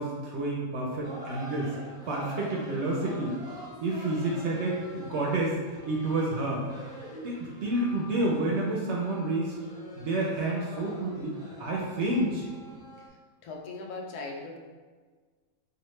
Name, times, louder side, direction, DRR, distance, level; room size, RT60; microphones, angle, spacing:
voice 1, 0.0-1.7 2.1-3.4 3.8-6.9 7.2-9.5 9.9-12.5, right 2 dB, 65° right, -3 dB, 0.7 m, -29 dB
sound 1, 1.0-13.1, equal, 5° right, 0.4 m, -45 dB
voice 2, 13.4-14.6, left 3 dB, 90° left, 0 dB, 1.2 m, -38 dB
4.1 x 2.5 x 3.1 m, 1.5 s
omnidirectional pair, 1.6 m